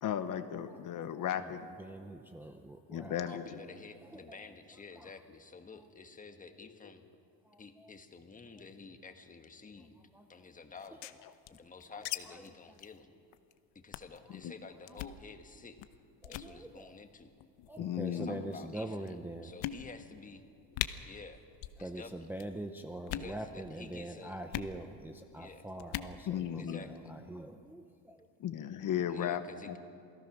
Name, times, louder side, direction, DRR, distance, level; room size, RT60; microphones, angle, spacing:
voice 1, 0.0-1.7 2.9-3.4 14.4-14.5 17.8-18.4 26.3-26.8 28.4-29.8, left 10 dB, 45° left, 10 dB, 1.1 m, -35 dB
voice 2, 0.7-3.6 3.9-4.5 5.0-5.2 5.7-5.9 7.4-7.9 9.8-10.4 10.9-11.0 11.9-12.8 14.2-14.4 14.9-15.0 16.2-17.0 17.7-19.5 21.8-28.3 28.8-29.1, right 1 dB, 5° right, 4 dB, 0.6 m, -45 dB
voice 3, 3.1-7.1 7.6-9.9 10.3-11.2 11.5-13.1 13.7-15.8 16.3-17.3 18.0-18.9 19.4-20.4 21.1-21.4 21.8-22.1 23.1-24.3 25.4-25.6 26.6-27.1 29.1-29.8, left 4 dB, 20° left, 7 dB, 1.4 m, -50 dB
sound 1, 10.8-12.2 12.4-12.5 12.8-13.0 13.3-13.5 13.9-14.2 14.9-15.2 15.8-16.0 16.2-16.5 17.4-17.8 18.5-18.6 19.1-19.2 19.6-20.2 20.4-20.5 20.7-20.9 21.5-21.8 22.1-22.5 23.0-23.3 24.5-24.7 25.8-26.1, left 14 dB, 80° left, 1.0 m, -39 dB
28.0 x 17.5 x 6.1 m, 2.5 s
cardioid pair, 135°, 43 cm